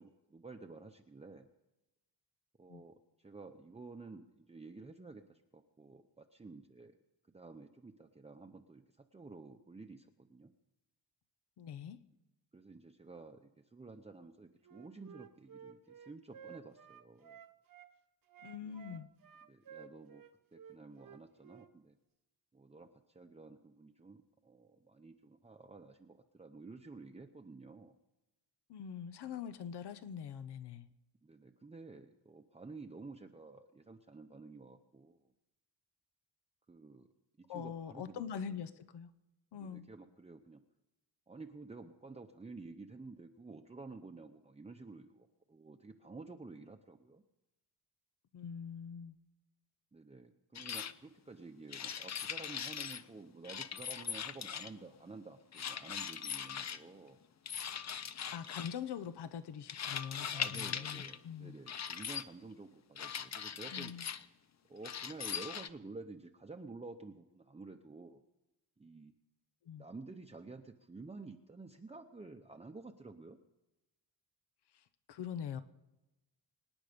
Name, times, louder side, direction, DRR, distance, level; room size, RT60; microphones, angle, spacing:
voice 1, 0.0-1.5 2.6-6.9 7.3-10.5 12.5-17.4 18.6-19.0 19.5-20.2 20.5-22.0 22.5-27.9 31.2-35.2 36.7-37.1 37.5-38.6 39.5-40.6 41.3-47.2 49.9-57.2 60.3-63.9 64.7-68.2 68.8-69.1 69.8-73.4, right 3 dB, 15° right, 4 dB, 0.8 m, -51 dB
voice 2, 11.6-12.0 18.4-19.1 28.7-30.9 37.5-39.1 39.5-39.8 48.3-49.2 58.3-61.6 63.7-64.1 69.6-69.8 74.7-75.6, left 8 dB, 80° left, 13 dB, 0.9 m, -43 dB
Wind instrument woodwind instrument, 14.6-17.9 18.3-21.7, right 8 dB, 55° right, 1.1 m, -54 dB
sound 1, 50.6-50.9 51.7-53.0 53.4-54.8 55.5-56.8 57.5-58.8 59.7-61.2 61.7-62.2 63.0-64.3 64.8-65.7, left 8 dB, 40° left, 0.7 m, -40 dB
25.0 x 9.8 x 5.2 m, 0.98 s
wide cardioid pair, 125°, 40 cm